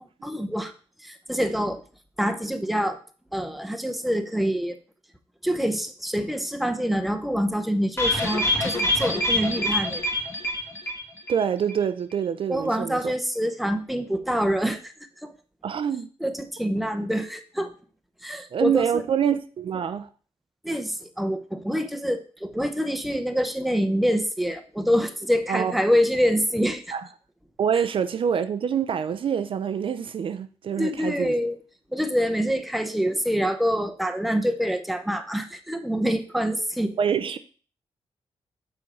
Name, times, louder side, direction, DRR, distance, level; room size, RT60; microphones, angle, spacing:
voice 1, 0.2-0.7 1.0-1.8 2.2-3.0 3.3-4.8 5.4-10.0 12.5-14.9 15.2-15.3 16.2-17.7 18.2-19.0 20.6-26.9 30.8-31.6 31.9-37.0, equal, ahead, 0.6 m, -26 dB
sound 1, 8.0-11.4 11.7-11.8 12.1-12.2, left 1 dB, 20° left, 1.4 m, -25 dB
voice 2, 11.3-13.1 15.6-16.1 18.5-20.1 25.5-25.7 26.9-27.0 27.6-31.3 37.0-37.4, right 8 dB, 55° right, 0.4 m, -26 dB
7.0 x 4.3 x 4.8 m
wide cardioid pair, 150°, 11 cm